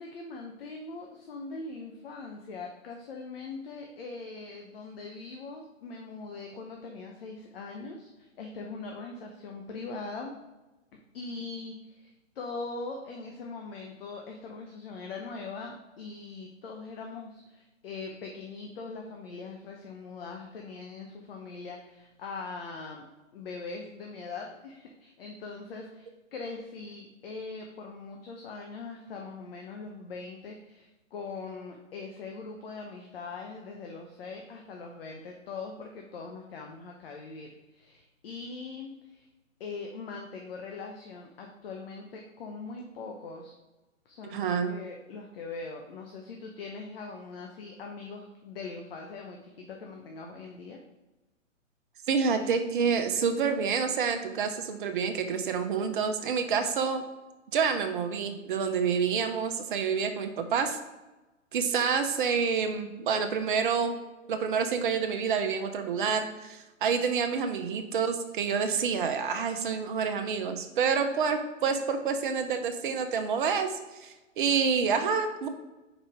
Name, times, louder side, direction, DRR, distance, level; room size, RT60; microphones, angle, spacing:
voice 1, 0.0-10.3 11.1-23.0 23.3-39.3 39.6-43.6 44.1-50.8, left 4 dB, 50° left, 1 dB, 0.8 m, -41 dB
voice 2, 44.2-44.7 52.1-57.0 57.5-60.8 61.5-64.0 64.3-75.5, right 6 dB, 40° right, 7 dB, 0.7 m, -28 dB
5.0 x 4.2 x 4.9 m, 1.1 s
hypercardioid pair, 130°, 39 cm